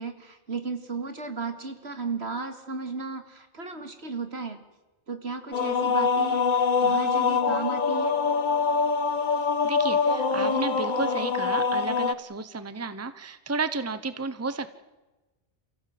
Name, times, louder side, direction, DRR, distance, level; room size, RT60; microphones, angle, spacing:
voice 1, 0.0-4.6 5.1-8.2, right 4 dB, 70° right, 8 dB, 2.5 m, -35 dB
sound 1, 5.5-12.1, left 5 dB, 45° left, 1.2 m, -24 dB
voice 2, 9.6-14.7, right 3 dB, 15° right, 12 dB, 1.0 m, -32 dB
29.5 x 16.0 x 7.8 m, 1.1 s
omnidirectional pair, 1.1 m